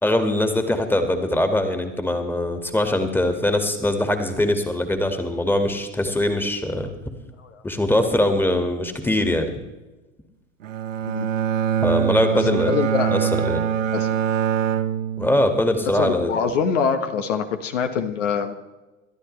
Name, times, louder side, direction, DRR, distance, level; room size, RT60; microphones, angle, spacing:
voice 1, 0.0-6.9 7.6-9.5 11.8-12.7 13.1-13.7 15.2-16.6, left 1 dB, 5° left, 6 dB, 2.0 m, -22 dB
Bowed string instrument, 10.6-15.9, right 8 dB, 75° right, 1.0 m, -24 dB
voice 2, 12.3-13.1 13.9-14.1 16.0-18.5, left 6 dB, 70° left, 7 dB, 1.4 m, -24 dB
28.5 x 13.0 x 3.3 m, 1.1 s
figure-of-eight pair, 80°, 38 cm